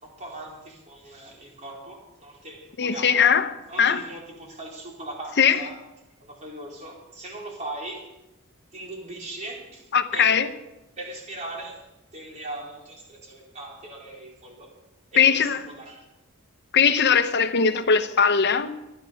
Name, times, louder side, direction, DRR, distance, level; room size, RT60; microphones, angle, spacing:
voice 1, 0.0-3.3 3.7-5.7 6.2-8.1 8.7-10.4 11.0-11.9 12.1-14.7 15.1-16.1, right 2 dB, 35° right, 4.2 m, -39 dB
voice 2, 2.8-3.5 3.8-4.0 5.4-5.6 9.9-10.5 15.2-15.6 16.7-18.7, left 6 dB, 55° left, 0.8 m, -20 dB
24.5 x 9.7 x 5.2 m
head